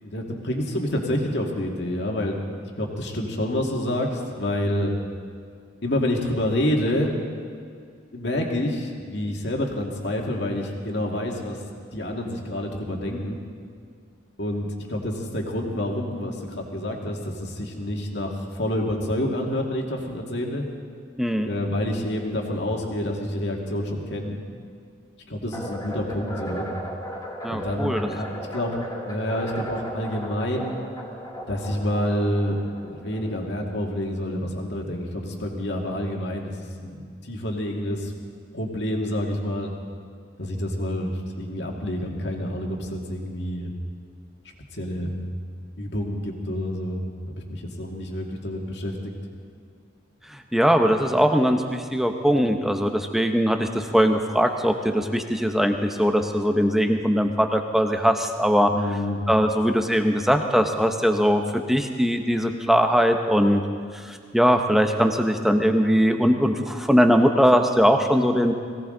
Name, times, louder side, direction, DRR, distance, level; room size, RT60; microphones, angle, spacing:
voice 1, 0.0-2.4 2.8-4.9 5.8-7.1 8.1-11.6 11.9-13.4 14.4-20.7 21.4-24.4 25.3-26.7 27.5-28.7 29.1-30.8 31.5-32.6 32.8-36.5 36.8-38.1 38.5-39.7 40.4-43.7 44.7-45.1 45.8-48.9 58.7-59.2, left 1 dB, 60° left, 0 dB, 2.1 m, -28 dB
voice 2, 21.2-21.5 27.4-28.1 50.3-58.7 59.3-63.7 63.9-68.5, equal, ahead, 5 dB, 0.8 m, -21 dB
sound 1, 25.5-33.8, equal, 20° left, 2.9 m, -36 dB
21.5 x 17.0 x 3.9 m, 2.2 s
head